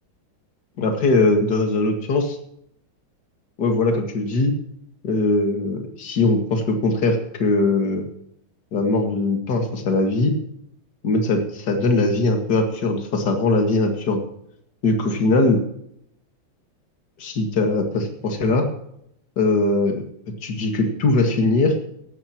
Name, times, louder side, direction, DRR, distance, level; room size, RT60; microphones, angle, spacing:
voice 1, 0.8-2.4 3.6-4.5 5.0-8.0 8.7-10.3 11.0-14.2 14.8-15.6 17.2-18.6 19.4-20.0 20.4-21.7, left 2 dB, 50° left, 4 dB, 2.5 m, -20 dB
16.5 x 13.5 x 3.0 m, 0.73 s
omnidirectional pair, 2.3 m